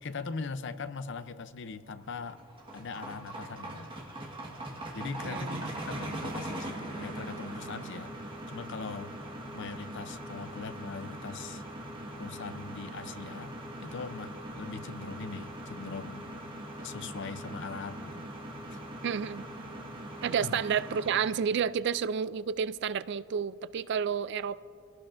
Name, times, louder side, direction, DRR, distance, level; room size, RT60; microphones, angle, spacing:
voice 1, 0.0-2.4 2.7-3.9 4.9-9.2 9.5-11.6 12.2-13.5 13.8-16.3 16.8-18.3 18.7-18.8 20.4-20.6, left 4 dB, 55° left, 12 dB, 0.6 m, -41 dB
sound 1, 2.0-21.4, right 1 dB, 25° right, 1.4 m, -41 dB
voice 2, 5.2-5.6 19.0-19.4 20.2-24.6, right 7 dB, 55° right, 16 dB, 0.3 m, -30 dB
26.0 x 17.5 x 2.6 m, 2.6 s
head